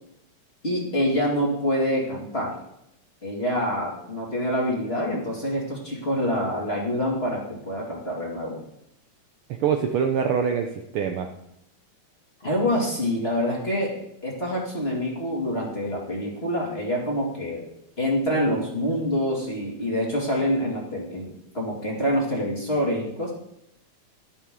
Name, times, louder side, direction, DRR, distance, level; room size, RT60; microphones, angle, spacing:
voice 1, 0.6-2.6 3.2-8.6 12.4-17.6 18.0-23.3, equal, 20° left, -2 dB, 2.2 m, -26 dB
voice 2, 9.5-11.3, right 7 dB, 85° right, 4 dB, 1.2 m, -24 dB
13.5 x 11.0 x 3.8 m, 0.80 s
omnidirectional pair, 3.4 m